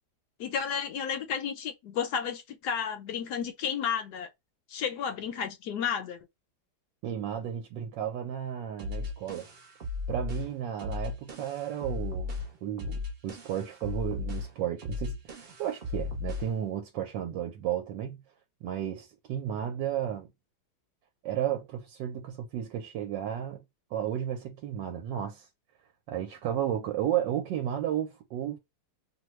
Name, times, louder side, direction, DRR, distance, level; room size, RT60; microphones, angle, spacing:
voice 1, 0.4-4.3 4.7-6.2, left 7 dB, 70° left, 1.0 m, -32 dB
voice 2, 7.0-9.5 10.1-12.4 12.6-18.2 18.6-20.3 21.2-23.6 23.9-25.5 26.1-28.6, right 10 dB, 75° right, 1.2 m, -33 dB
sound 1, 8.8-16.6, left 3 dB, 45° right, 0.8 m, -36 dB
3.0 x 2.2 x 3.0 m
omnidirectional pair, 2.1 m